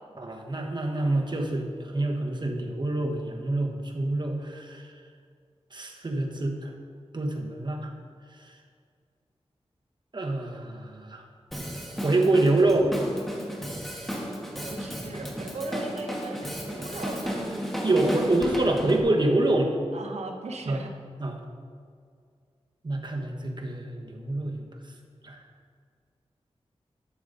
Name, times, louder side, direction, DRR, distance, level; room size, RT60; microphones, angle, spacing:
voice 1, 0.2-4.9 5.7-6.7 7.1-7.9 10.1-11.2 12.0-12.9 17.8-19.7 20.7-20.8 21.2-21.3 22.8-24.6 25.2-25.4, right 2 dB, 45° right, 2 dB, 1.3 m, -26 dB
Drum kit, 11.5-19.0, equal, ahead, 1.7 m, -33 dB
voice 2, 14.6-17.6 19.9-20.9, right 2 dB, 80° right, 3 dB, 1.0 m, -38 dB
11.5 x 7.1 x 4.0 m, 2.1 s
wide cardioid pair, 65°, 11 cm